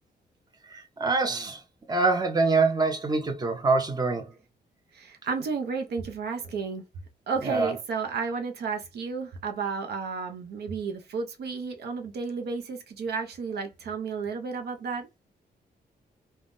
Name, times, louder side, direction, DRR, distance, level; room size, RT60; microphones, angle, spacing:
voice 1, 0.6-1.6 1.9-4.3 7.4-7.7, right 3 dB, 25° right, 0.7 m, -25 dB
voice 2, 4.9-6.8 7.3-15.1, right 5 dB, 80° right, 0.6 m, -32 dB
3.4 x 2.2 x 2.5 m
cardioid pair, 105°, 17 cm